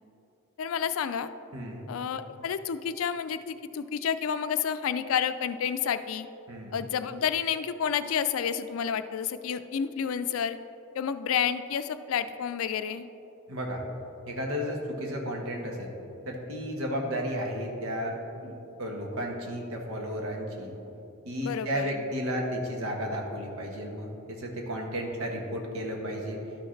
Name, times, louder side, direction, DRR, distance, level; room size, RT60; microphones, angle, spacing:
voice 1, 0.6-1.3 1.9-6.3 6.7-10.6 10.9-13.1 21.4-22.0, left 8 dB, 80° left, 12 dB, 0.4 m, -30 dB
voice 2, 1.5-1.9 6.5-6.8 13.5-13.8 14.3-15.9 16.3-18.5 18.8-20.7 21.2-26.4, equal, 90° right, 1 dB, 1.3 m, -33 dB
12.0 x 6.3 x 3.2 m, 2.9 s
head